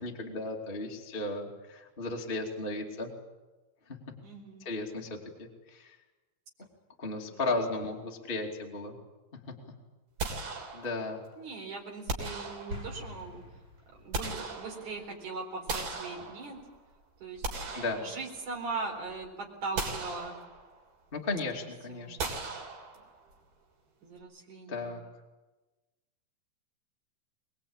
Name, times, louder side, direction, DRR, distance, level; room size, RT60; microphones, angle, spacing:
voice 1, 0.0-3.1 4.6-6.0 7.0-9.0 10.7-11.2 17.7-18.0 21.1-22.6 24.7-25.0, left 2 dB, 15° left, 0 dB, 2.2 m, -35 dB
voice 2, 4.2-4.7 7.3-7.4 11.4-13.4 14.0-16.6 17.2-17.6 18.0-20.4 21.9-22.2 24.0-24.9, right 3 dB, 50° right, 1 dB, 5.6 m, -40 dB
sound 1, 10.2-11.2 12.1-13.1 13.8-15.1 15.7-16.8 17.2-18.7 19.1-19.2 19.8-20.8 22.2-23.3, right 3 dB, 65° right, 5.1 m, -38 dB
sound 2, 12.7-14.3, left 1 dB, 25° right, 2.9 m, -44 dB
24.0 x 21.0 x 8.8 m, 1.2 s
omnidirectional pair, 4.6 m